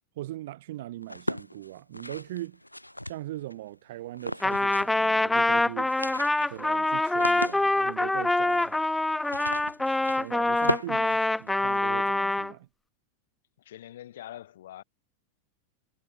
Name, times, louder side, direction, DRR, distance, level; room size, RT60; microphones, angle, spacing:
voice 1, 0.2-2.6 3.1-5.9 6.5-8.8 10.1-12.7, right 15 dB, 55° right, 1.9 m, -40 dB
sound 1, 1.0-3.5 4.1-5.1 5.3-5.4 5.7-11.9, left 1 dB, 85° left, 0.8 m, -36 dB
Trumpet, 4.4-12.5, left 2 dB, 5° left, 0.6 m, -25 dB
voice 2, 13.6-14.8, left 12 dB, 60° left, 6.7 m, -44 dB
figure-of-eight pair, 90°, 0 cm